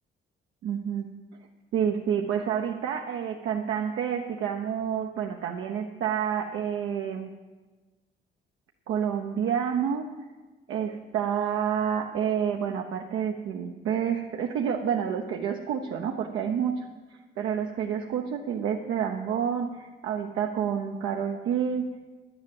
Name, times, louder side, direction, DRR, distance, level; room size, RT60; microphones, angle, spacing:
voice 1, 0.6-1.1 1.7-7.3 8.9-10.1 10.7-16.7 17.4-21.8, right 8 dB, 85° right, 1 dB, 0.9 m, -29 dB
10.5 x 10.0 x 7.8 m, 1.3 s
cardioid pair, 90°, 20 cm